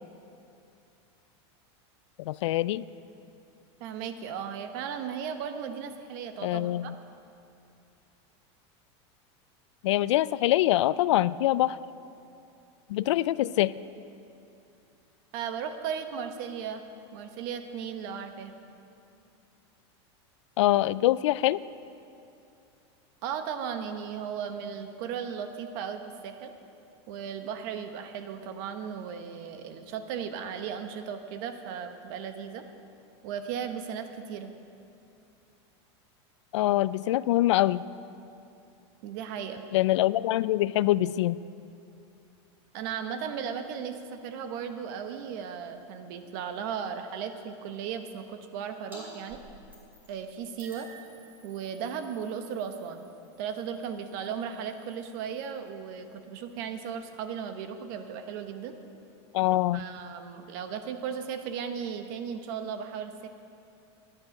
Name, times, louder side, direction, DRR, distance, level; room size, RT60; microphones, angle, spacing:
voice 1, 2.2-2.9 6.4-6.9 9.8-11.8 12.9-13.7 20.6-21.6 36.5-37.8 39.7-41.4 59.3-59.8, left 15 dB, 85° left, 18 dB, 0.4 m, -24 dB
voice 2, 3.8-6.9 15.3-16.8 17.1-18.5 23.2-26.5 27.1-32.7 33.2-34.5 39.0-39.6 42.7-49.4 50.1-50.9 51.4-53.1 53.4-58.8 59.7-63.3, right 7 dB, 45° right, 8 dB, 1.1 m, -36 dB
sound 1, 48.9-49.0 49.3-50.2 50.6-55.7, right 2 dB, 10° right, 2.9 m, -53 dB
14.5 x 10.5 x 6.5 m, 2.6 s
supercardioid pair, 165°, 15 cm